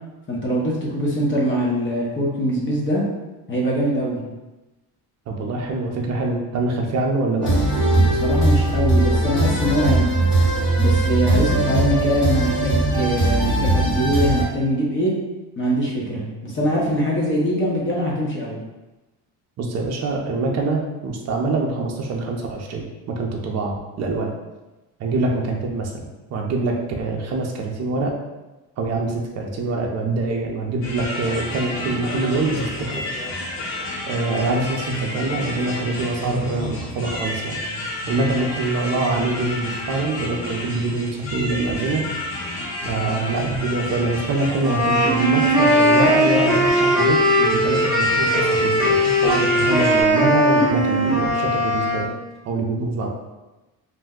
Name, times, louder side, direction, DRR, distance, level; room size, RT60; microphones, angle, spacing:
voice 1, 0.3-3.0 3.5-4.2 8.0-10.3 10.8-15.1 15.6-18.6, equal, 30° left, -4 dB, 0.7 m, -22 dB
voice 2, 5.3-7.5 19.6-24.3 25.0-28.1 28.8-33.0 34.0-37.6 38.1-42.0 42.8-52.1 52.4-53.1, right 3 dB, 45° right, 0 dB, 0.5 m, -24 dB
sound 1, 7.4-14.4, right 2 dB, 50° left, 1.4 m, -19 dB
sound 2, 30.8-50.0, left 1 dB, 75° left, 0.8 m, -30 dB
sound 3, 44.6-52.1, equal, ahead, 0.8 m, -18 dB
2.5 x 2.1 x 3.5 m, 1.1 s
cardioid pair, 140°, 38 cm